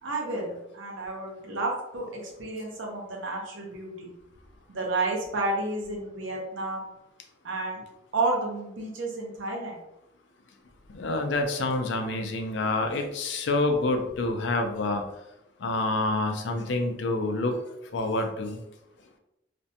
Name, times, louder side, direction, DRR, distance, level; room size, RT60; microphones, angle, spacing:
voice 1, 0.0-4.1 4.7-6.9 7.4-7.8 8.1-9.8, right 2 dB, 80° right, 0 dB, 0.7 m, -31 dB
voice 2, 10.9-15.0 15.6-17.6 17.9-18.6, left 2 dB, 65° left, 5 dB, 0.4 m, -27 dB
2.5 x 2.1 x 2.7 m, 0.85 s
head